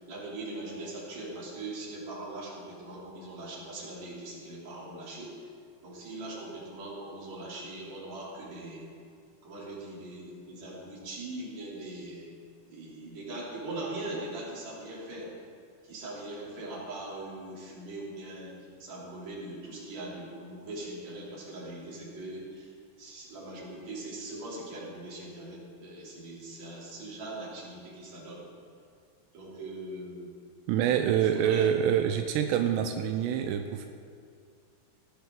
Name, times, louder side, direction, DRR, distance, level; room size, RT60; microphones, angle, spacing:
voice 1, 0.0-5.5 5.8-8.9 9.4-12.3 12.7-15.3 15.8-18.5 18.8-22.7 23.0-28.5 29.3-30.3 31.0-31.7, right 2 dB, 40° right, -6 dB, 3.9 m, -41 dB
voice 2, 30.7-33.9, right 9 dB, 85° right, 6 dB, 2.5 m, -26 dB
17.5 x 13.5 x 3.7 m, 2.2 s
omnidirectional pair, 5.5 m